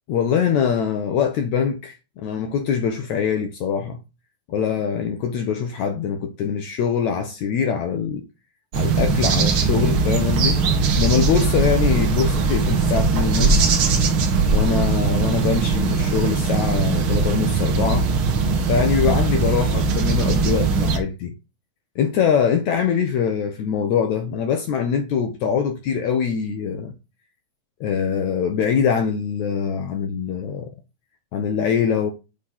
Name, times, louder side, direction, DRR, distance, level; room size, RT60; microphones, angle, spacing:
voice 1, 0.1-4.0 4.5-8.2 8.7-10.6 11.0-13.7 14.5-18.1 18.6-21.3 22.0-26.9 27.8-30.7 31.3-32.1, left 7 dB, 80° left, 1.7 m, -23 dB
sound 1, 8.7-21.0, right 4 dB, 85° right, 1.1 m, -20 dB
8.3 x 3.8 x 5.7 m
omnidirectional pair, 4.3 m